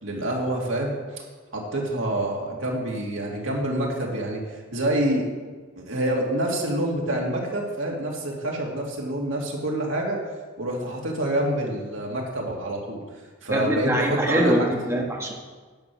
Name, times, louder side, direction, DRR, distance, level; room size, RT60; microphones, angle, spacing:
voice 1, 0.0-0.9 1.5-5.2 5.8-10.2 10.6-13.0 13.4-14.7, right 1 dB, 85° right, -1 dB, 2.5 m, -27 dB
voice 2, 13.5-15.3, right 1 dB, 15° right, -1 dB, 1.5 m, -23 dB
10.5 x 7.8 x 6.2 m, 1.4 s
head